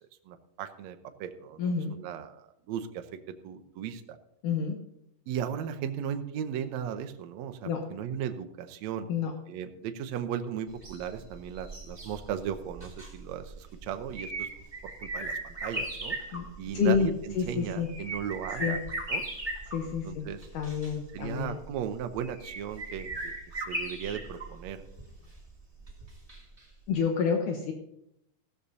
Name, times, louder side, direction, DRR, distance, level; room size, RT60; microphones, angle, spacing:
voice 1, 0.0-4.2 5.3-9.1 9.5-14.5 14.8-16.2 16.6-18.8 19.1-19.2 19.8-20.5 21.1-24.8, right 8 dB, 75° right, 7 dB, 1.7 m, -37 dB
voice 2, 1.6-1.9 4.4-4.8 7.7-7.8 9.1-9.3 16.3-16.5 16.7-17.1 17.4-17.9 18.6-18.8 19.7-20.3 20.5-21.6 26.9-27.7, left 6 dB, 70° left, 2 dB, 2.4 m, -28 dB
sound 1, 10.7-26.6 26.9-27.0, right 2 dB, 10° right, 2.0 m, -39 dB
15.5 x 13.0 x 2.8 m, 0.77 s
omnidirectional pair, 4.0 m